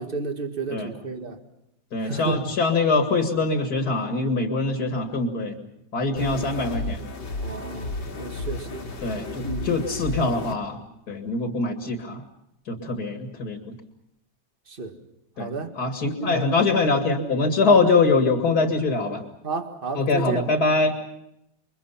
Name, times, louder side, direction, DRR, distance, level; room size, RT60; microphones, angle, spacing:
voice 1, 0.0-1.4 2.0-2.6 6.2-6.5 7.4-8.8 9.4-9.7 12.8-13.0 14.7-15.0 15.4-15.7 16.2-16.5 17.2-17.4 17.7-17.9 19.4-20.4, right 3 dB, 30° right, 1.9 m, -32 dB
voice 2, 1.9-5.6 5.9-7.0 9.0-10.8 11.1-12.2 12.7-13.8 15.4-15.5 15.8-19.2 19.9-20.9, left 3 dB, 55° left, 2.5 m, -23 dB
sound 1, 6.2-10.5, left 2 dB, 85° left, 3.4 m, -33 dB
28.5 x 23.5 x 5.8 m
omnidirectional pair, 2.1 m